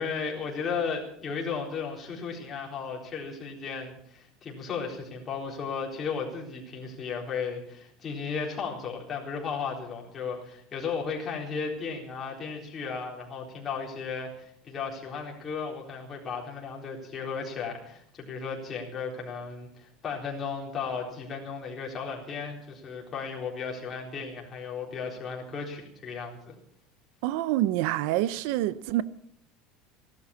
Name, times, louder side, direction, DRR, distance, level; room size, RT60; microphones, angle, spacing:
voice 1, 0.0-26.5, left 5 dB, 20° left, 4.0 m, -35 dB
voice 2, 27.2-29.0, right 14 dB, 65° right, 0.6 m, -26 dB
17.0 x 12.0 x 7.1 m
cardioid pair, 165°, 0 cm